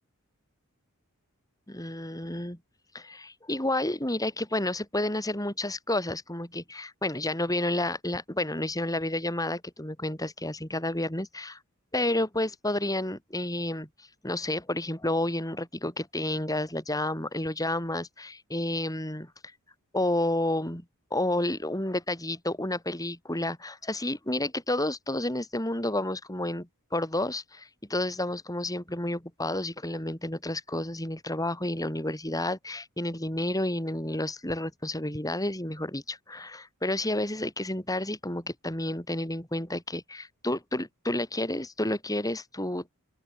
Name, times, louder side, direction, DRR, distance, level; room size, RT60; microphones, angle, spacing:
voice 1, 1.7-2.6 2.9-11.6 11.9-19.3 19.9-20.8 21.1-42.9, left 1 dB, 15° left, 8.0 m, -30 dB
open air
head